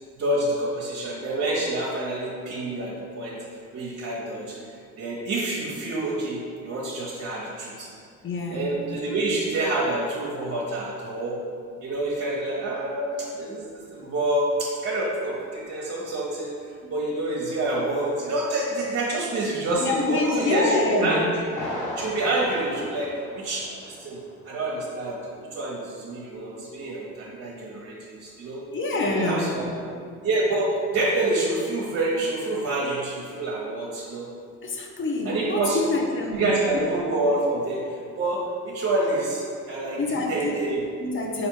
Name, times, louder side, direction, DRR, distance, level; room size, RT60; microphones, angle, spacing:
voice 1, 0.2-3.4 3.7-4.6 5.0-7.9 8.5-11.4 11.8-16.5 16.9-21.4 22.0-24.2 24.4-25.2 25.5-28.6 28.9-29.8 30.2-34.3 35.2-36.0 36.3-40.8, right 2 dB, 50° right, -4 dB, 0.8 m, -27 dB
voice 2, 8.2-8.7 19.8-21.3 28.7-29.7 34.6-36.8 39.7-40.7 41.0-41.5, left 2 dB, 40° left, 1 dB, 0.7 m, -26 dB
Thunder, 21.5-24.0 24.3-24.4 25.0-25.1, left 1 dB, 75° left, 1.4 m, -35 dB
4.3 x 2.5 x 4.5 m, 2.3 s
cardioid pair, 90°, 30 cm